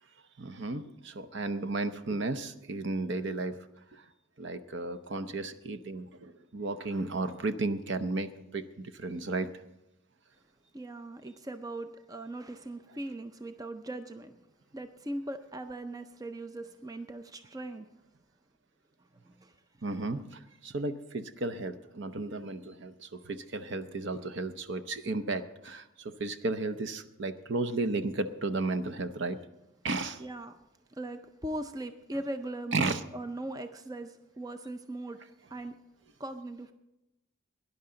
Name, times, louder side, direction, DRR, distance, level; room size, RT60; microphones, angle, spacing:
voice 1, 0.4-3.6 3.9-4.0 4.4-9.5 19.8-29.4 29.8-30.2 32.7-33.0, right 3 dB, 55° right, 11 dB, 0.7 m, -34 dB
voice 2, 10.7-14.5 14.7-17.9 19.1-19.6 19.9-20.2 30.2-30.6 30.9-35.2 35.5-35.7 36.2-36.7, right 1 dB, 15° right, 8 dB, 0.4 m, -40 dB
18.0 x 10.5 x 3.8 m, 0.90 s
head